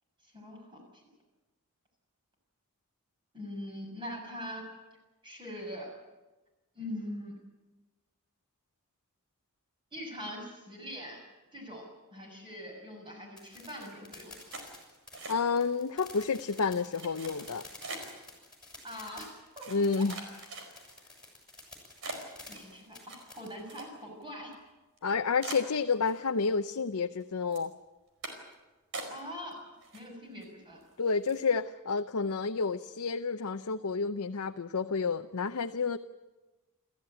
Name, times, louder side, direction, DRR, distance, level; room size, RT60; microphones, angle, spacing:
voice 1, 0.3-1.0 3.3-4.7 5.2-5.9 6.7-7.4 9.9-11.2 11.5-14.4 18.8-20.0 22.5-24.5 29.1-29.6 29.9-30.8, equal, 20° right, 1 dB, 6.7 m, -42 dB
sound 1, 13.4-23.5, left 2 dB, 5° left, 6.7 m, -50 dB
sound 2, 14.5-15.7 16.0-16.5 17.0-18.2 18.9-19.0 19.6-21.0 21.5-21.6 22.0-24.2 24.5-24.6 25.0-25.1 25.4-26.5 26.8-27.2 27.5-27.7 28.2-28.5 28.9-29.5 29.8-30.4 30.8-30.9 31.2-31.5, right 3 dB, 60° right, 4.7 m, -43 dB
voice 2, 15.3-17.6 19.7-20.2 25.0-27.7 31.0-36.0, left 5 dB, 75° left, 6 dB, 0.7 m, -30 dB
29.5 x 14.0 x 8.9 m, 1.2 s
head